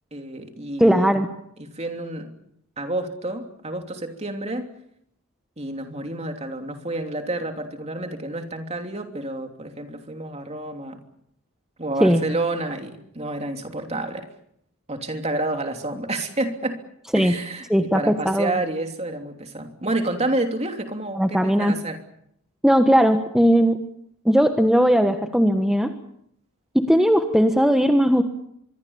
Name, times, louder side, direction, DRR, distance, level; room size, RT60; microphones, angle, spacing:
voice 1, 0.1-1.1 1.6-2.3 2.8-4.7 5.6-11.0 11.8-14.3 14.9-16.8 17.1-22.0, right 2 dB, 30° right, 5 dB, 3.1 m, -29 dB
voice 2, 0.8-1.3 12.0-12.2 17.1-17.3 17.7-18.5 21.1-21.7 22.6-23.8 24.2-25.9 26.7-28.2, equal, ahead, 5 dB, 1.3 m, -18 dB
25.0 x 22.5 x 7.2 m, 0.74 s
head